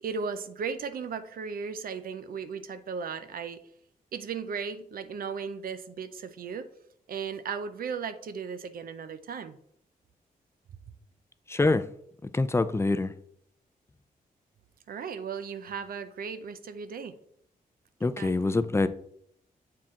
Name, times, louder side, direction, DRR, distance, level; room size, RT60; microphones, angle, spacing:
voice 1, 0.0-3.6 4.1-6.7 7.1-9.6 14.9-17.1 18.0-18.4, right 6 dB, 75° right, 0.5 m, -36 dB
voice 2, 11.5-11.8 12.3-13.1 18.0-18.9, left 2 dB, 15° left, 0.4 m, -25 dB
7.3 x 4.4 x 3.7 m
cardioid pair, 80°, 15 cm